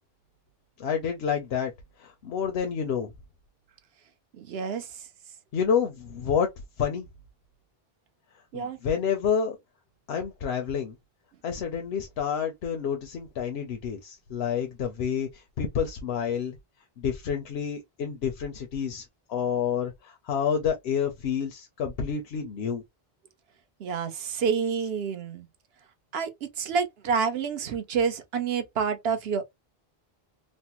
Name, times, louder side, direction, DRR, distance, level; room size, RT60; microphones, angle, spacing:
voice 1, 0.8-1.7 2.0-3.1 5.5-6.5 6.8-7.1 8.5-9.6 10.1-11.0 11.4-16.6 17.0-22.8, left 7 dB, 90° left, 0.9 m, -29 dB
voice 2, 4.4-4.9 8.5-8.8 23.8-25.5 26.1-26.3 26.6-29.5, right 6 dB, 80° right, 0.9 m, -28 dB
3.2 x 2.0 x 2.8 m
omnidirectional pair, 1.0 m